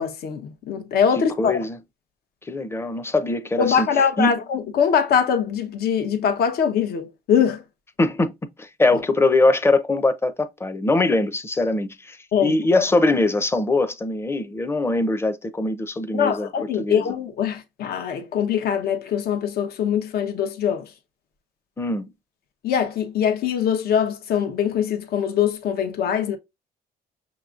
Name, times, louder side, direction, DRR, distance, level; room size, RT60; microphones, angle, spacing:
voice 1, 0.0-1.6 3.6-7.6 12.3-12.5 16.1-20.8 22.6-26.4, left 7 dB, 65° left, 1.0 m, -22 dB
voice 2, 1.1-1.8 2.5-3.9 4.2-4.3 8.0-8.3 8.6-16.5 16.8-17.1 21.8-22.1, left 2 dB, 15° left, 0.7 m, -22 dB
6.0 x 3.0 x 2.4 m
cardioid pair, 110°, 17 cm